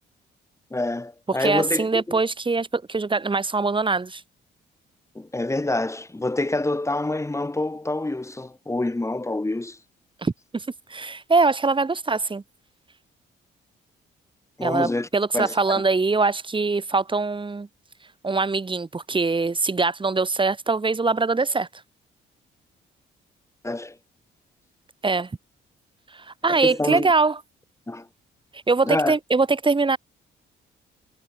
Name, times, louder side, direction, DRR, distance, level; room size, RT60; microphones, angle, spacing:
voice 1, 0.7-2.2 5.1-9.8 14.6-15.1 15.3-15.8 23.6-24.0 26.5-27.1 27.9-28.1 28.8-29.2, left 2 dB, 15° left, 5.9 m, -27 dB
voice 2, 1.3-4.2 10.2-12.4 14.6-17.7 18.2-21.7 25.0-25.3 26.1-27.4 28.5-30.0, right 3 dB, 25° right, 3.8 m, -23 dB
cardioid pair, 90°, 20 cm